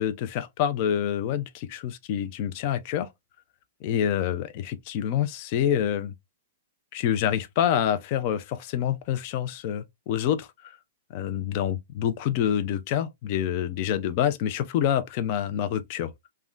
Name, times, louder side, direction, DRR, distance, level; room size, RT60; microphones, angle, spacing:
voice 1, 0.0-3.1 3.8-6.1 6.9-10.5 11.1-16.1, left 10 dB, 35° left, 0.4 m, -27 dB
3.5 x 2.1 x 2.4 m
hypercardioid pair, 165°, 0 cm